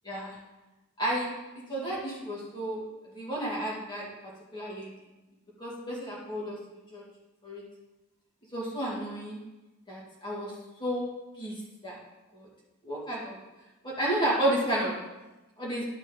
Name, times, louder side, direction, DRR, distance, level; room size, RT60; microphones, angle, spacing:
voice 1, 0.1-0.4 1.0-1.3 1.7-2.8 3.1-4.1 4.5-4.9 5.6-6.6 6.9-7.0 7.4-7.6 8.5-9.4 9.9-10.5 10.8-11.1 11.4-11.5 11.8-12.0 12.3-12.5 12.8-13.4 13.8-15.0 15.6-15.8, right 1 dB, 20° left, -5 dB, 2.5 m, -31 dB
11.5 x 5.2 x 3.9 m, 1.1 s
head